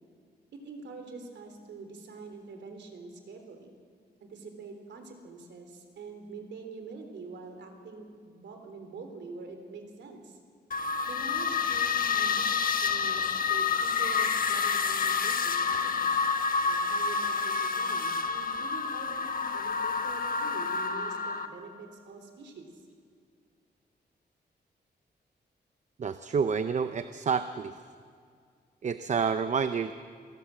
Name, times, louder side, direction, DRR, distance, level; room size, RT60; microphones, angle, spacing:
voice 1, 0.6-3.8 4.2-10.4 11.0-16.2 16.7-22.7, right 4 dB, 90° right, 5 dB, 3.7 m, -45 dB
sound 1, 10.7-21.5, left 5 dB, 50° left, 1.3 m, -28 dB
voice 2, 26.0-27.8 28.8-29.9, right 6 dB, 40° right, 10 dB, 0.7 m, -29 dB
27.0 x 18.5 x 7.6 m, 2.1 s
wide cardioid pair, 160°, 18 cm